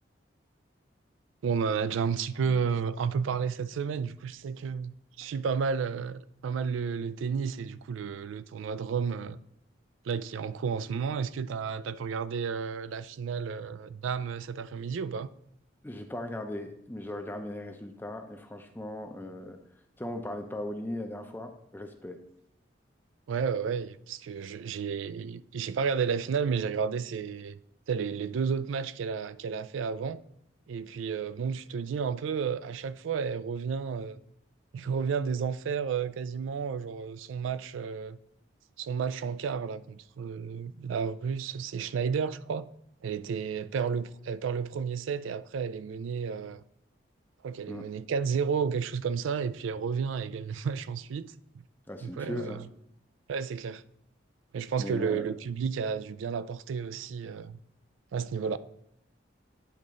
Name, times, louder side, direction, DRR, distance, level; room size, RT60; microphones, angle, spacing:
voice 1, 1.4-9.4 10.0-15.3 23.3-27.6 27.9-30.2 30.7-34.2 34.7-38.2 38.8-42.7 43.0-46.6 47.4-51.3 52.0-52.6 53.3-53.8 54.5-57.6 58.1-58.6, right 6 dB, 85° right, 0.3 m, -32 dB
voice 2, 15.8-19.6 20.0-22.2 47.7-47.9 51.9-52.6 54.8-55.3, left 1 dB, 10° left, 0.5 m, -38 dB
9.3 x 3.9 x 3.7 m
head